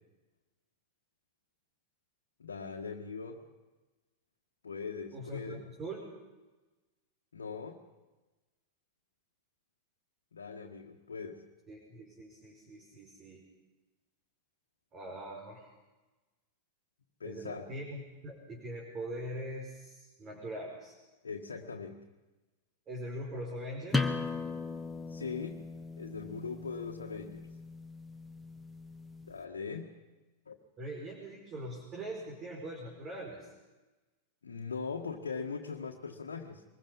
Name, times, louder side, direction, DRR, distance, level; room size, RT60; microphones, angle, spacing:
voice 1, 2.4-3.4 4.6-5.6 7.3-7.8 10.3-11.4 17.2-17.7 21.2-22.0 25.1-25.7 26.0-27.5 29.2-29.9 30.5-30.6 34.4-36.6, left 5 dB, 70° left, 0 dB, 1.7 m, -40 dB
voice 2, 5.1-6.1 11.7-13.4 14.9-15.7 17.2-21.0 22.9-24.1 30.8-33.5, right 1 dB, 30° right, -1 dB, 5.1 m, -42 dB
sound 1, 23.9-29.3, left 3 dB, 5° left, 1.6 m, -37 dB
24.5 x 21.5 x 5.5 m, 1.2 s
figure-of-eight pair, 90°, 0 cm